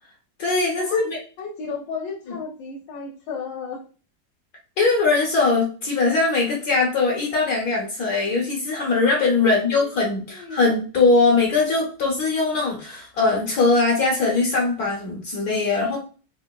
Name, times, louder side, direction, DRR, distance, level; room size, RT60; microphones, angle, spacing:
voice 1, 0.4-1.2 2.3-2.4 4.8-16.0, left 3 dB, 65° left, -2 dB, 1.2 m, -21 dB
voice 2, 1.4-3.8 9.4-10.6, left 5 dB, 80° left, -2 dB, 1.4 m, -34 dB
3.6 x 3.4 x 2.2 m, 0.37 s
omnidirectional pair, 2.0 m